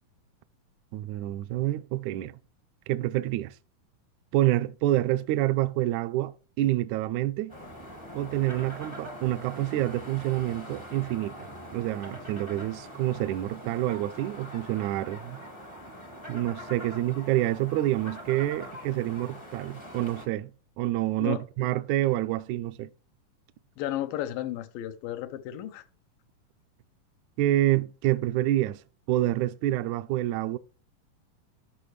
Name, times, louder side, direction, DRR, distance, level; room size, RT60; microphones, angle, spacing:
voice 1, 0.9-2.4 2.9-3.5 4.3-6.3 6.6-7.6 8.1-11.3 11.7-15.4 16.3-20.5 20.8-22.9 27.4-28.8 29.1-30.6, right 15 dB, 80° right, 1.8 m, -27 dB
sound 1, 7.5-20.3, equal, 50° left, 0.3 m, -43 dB
voice 2, 23.8-25.8, left 13 dB, 90° left, 2.5 m, -33 dB
13.0 x 5.7 x 3.2 m
omnidirectional pair, 3.9 m